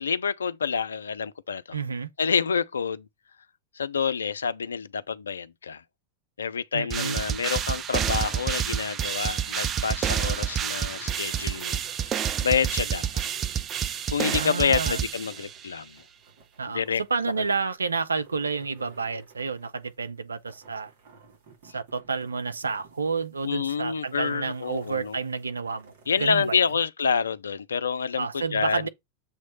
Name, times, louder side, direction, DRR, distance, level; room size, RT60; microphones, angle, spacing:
voice 1, 0.0-1.6 2.2-3.1 3.8-5.8 6.4-13.2 13.8-16.0 16.7-17.0 23.4-25.2 26.1-28.8, left 6 dB, 70° left, 0.5 m, -28 dB
voice 2, 1.7-2.1 6.7-7.2 14.3-15.0 16.6-16.8 17.1-20.9 21.7-25.9 26.2-26.6 28.2-28.9, right 5 dB, 75° right, 0.6 m, -30 dB
sound 1, 6.9-15.7, right 9 dB, 30° right, 0.5 m, -29 dB
sound 2, 9.9-26.7, right 4 dB, 55° right, 2.7 m, -55 dB
7.1 x 3.2 x 5.2 m
figure-of-eight pair, 90°, 0 cm